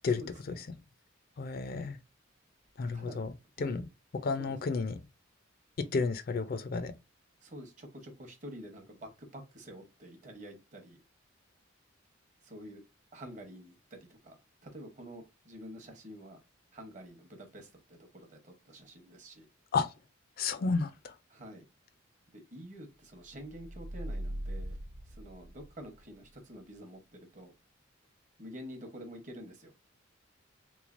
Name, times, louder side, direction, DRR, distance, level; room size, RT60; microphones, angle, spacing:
voice 1, 0.2-0.7 2.9-3.2 3.6-3.8 4.4-4.6 7.4-11.0 12.4-12.8 13.1-16.4 16.7-19.5 21.3-21.6 22.3-24.8 25.0-27.5 28.4-29.7, equal, 40° right, 0.8 m, -48 dB
voice 2, 1.4-2.0 2.8-3.3 3.6-3.9 4.1-5.0 5.8-6.9 19.7-19.9 20.4-21.1, left 4 dB, 45° left, 0.3 m, -32 dB
sound 1, 23.4-26.0, right 1 dB, 80° right, 0.6 m, -40 dB
3.5 x 3.1 x 2.5 m
head